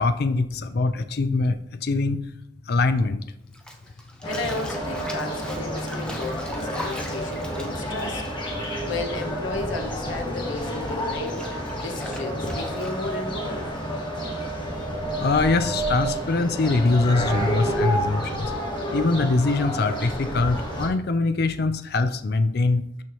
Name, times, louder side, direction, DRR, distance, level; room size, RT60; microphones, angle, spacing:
voice 1, 0.0-2.2 2.7-3.2 15.2-18.5 18.9-23.0, left 3 dB, 50° left, 10 dB, 0.4 m, -23 dB
Bathtub (filling or washing), 3.5-9.4 9.6-13.2, left 1 dB, 5° left, 0.7 m, -40 dB
voice 2, 4.2-8.2 8.6-13.7, left 3 dB, 70° left, 4 dB, 1.2 m, -34 dB
sound 1, 4.2-20.9, right 1 dB, 25° left, 1.5 m, -30 dB
12.5 x 4.6 x 3.1 m, 0.78 s
head